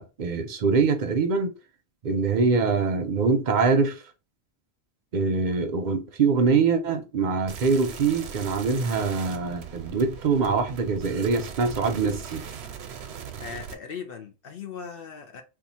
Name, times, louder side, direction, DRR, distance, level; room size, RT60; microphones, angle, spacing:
voice 1, 0.0-1.5 2.0-4.0 5.1-12.4, right 4 dB, 50° right, 0.6 m, -24 dB
sound 1, 7.5-13.7, right 7 dB, 80° right, 0.8 m, -39 dB
voice 2, 13.4-15.4, left 6 dB, 60° left, 0.9 m, -38 dB
2.9 x 2.3 x 4.0 m
omnidirectional pair, 1.1 m